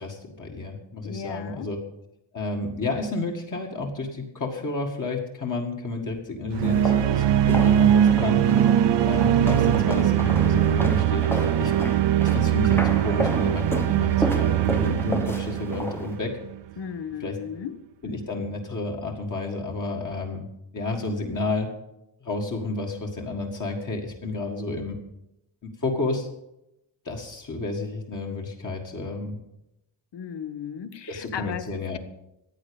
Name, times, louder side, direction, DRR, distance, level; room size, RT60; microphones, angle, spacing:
voice 1, 0.0-1.8 2.3-8.4 9.1-11.7 12.2-16.3 17.2-17.3 18.0-20.5 20.7-21.7 22.2-25.0 25.6-26.3 27.1-29.4 31.1-32.0, left 2 dB, 40° left, 0 dB, 2.0 m, -31 dB
voice 2, 1.0-1.7 16.8-17.8 30.1-32.0, left 8 dB, 60° left, 12 dB, 1.1 m, -35 dB
sound 1, 6.5-16.6, right 11 dB, 60° right, 0.6 m, -21 dB
sound 2, 6.6-16.2, equal, 5° left, 0.9 m, -32 dB
14.5 x 9.8 x 7.0 m, 0.88 s
wide cardioid pair, 160°, 48 cm